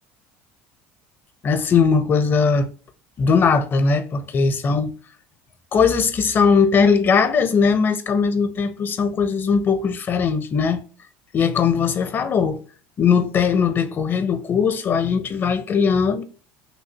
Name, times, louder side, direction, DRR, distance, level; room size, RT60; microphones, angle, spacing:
voice 1, 1.4-2.7 3.2-4.9 5.7-10.8 11.3-12.6 13.0-16.2, left 5 dB, 35° left, 0.8 m, -19 dB
6.2 x 2.7 x 2.9 m
supercardioid pair, 95°, 6 cm